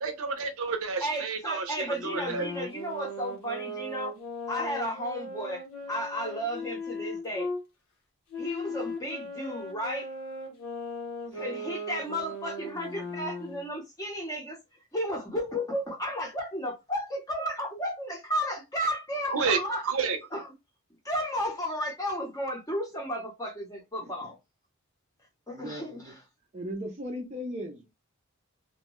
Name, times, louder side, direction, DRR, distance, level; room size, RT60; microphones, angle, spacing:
voice 1, 0.0-1.8 2.0-2.5 19.3-20.2, right 5 dB, 70° right, 0.7 m, -30 dB
voice 2, 1.0-4.1 4.5-7.5 8.4-10.1 11.3-14.6 14.9-19.9 20.3-20.5 21.0-24.4 25.5-26.2, equal, 15° left, 0.7 m, -33 dB
sound 1, 1.9-7.6 8.3-13.7, left 1 dB, 80° left, 0.9 m, -38 dB
voice 3, 25.5-26.1 26.5-27.9, equal, 30° right, 0.5 m, -37 dB
2.7 x 2.2 x 2.9 m
head